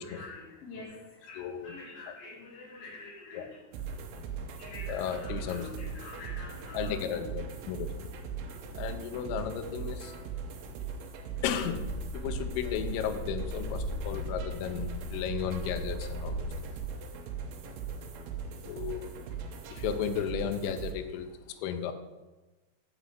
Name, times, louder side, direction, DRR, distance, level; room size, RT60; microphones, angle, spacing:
voice 1, 0.0-3.6 4.6-7.2, left 3 dB, 60° left, -2 dB, 2.6 m, -46 dB
voice 2, 1.4-1.7 3.3-3.5 4.9-5.7 6.7-8.1 8.8-10.2 11.4-11.9 12.1-16.5 18.6-19.1 19.7-21.9, left 8 dB, 90° left, 8 dB, 3.3 m, -34 dB
sound 1, 3.7-20.9, right 6 dB, 75° right, 2.6 m, -40 dB
sound 2, 11.4-16.8, left 2 dB, 30° left, 1.2 m, -38 dB
8.3 x 5.4 x 7.4 m, 1.1 s
omnidirectional pair, 5.7 m